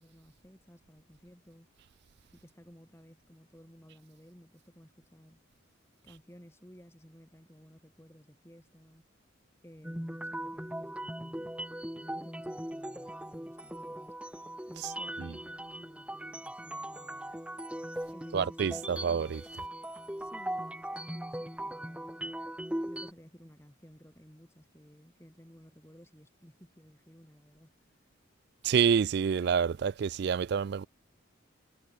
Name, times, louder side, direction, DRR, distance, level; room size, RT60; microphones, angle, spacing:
voice 1, 0.0-1.7 2.3-5.4 6.0-9.1 9.6-11.5 11.9-14.1 14.7-17.4 18.1-19.1 20.2-22.3 22.8-27.9, equal, 15° left, 6.7 m, -55 dB
sound 1, 9.8-23.1, right 1 dB, 5° right, 1.2 m, -39 dB
voice 2, 18.3-19.4 28.6-30.9, right 7 dB, 55° right, 0.3 m, -28 dB
head